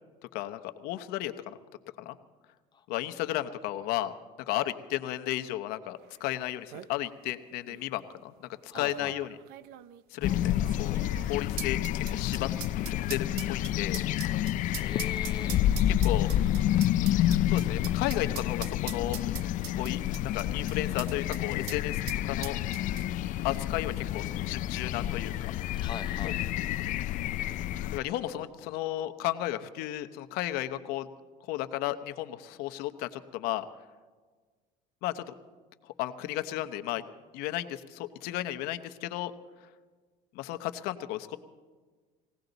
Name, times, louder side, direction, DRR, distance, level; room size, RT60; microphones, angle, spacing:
voice 1, 0.3-1.6 2.0-2.2 2.9-4.1 4.5-9.3 10.1-11.0 11.3-12.5 13.1-14.0 15.9-16.3 17.5-19.2 19.8-22.6 23.4-25.5 26.2-26.3 27.9-31.1 31.5-33.7 35.0-35.3 35.8-37.0 37.3-39.3 40.3-41.4, left 14 dB, 75° left, 9 dB, 0.9 m, -34 dB
sound 1, 6.2-6.3 6.5-6.9 7.7-7.8 8.7-21.4 21.7-21.8 22.1-23.3 23.5-23.6, right 13 dB, 70° right, 0.6 m, -42 dB
voice 2, 8.7-9.1 14.7-15.6 25.7-26.4 27.9-28.2, left 6 dB, 25° left, 7 dB, 0.9 m, -42 dB
sound 2, 10.2-28.0, left 12 dB, 55° left, 0.5 m, -29 dB
21.0 x 17.0 x 4.0 m, 1.4 s
cardioid pair, 125°, 16 cm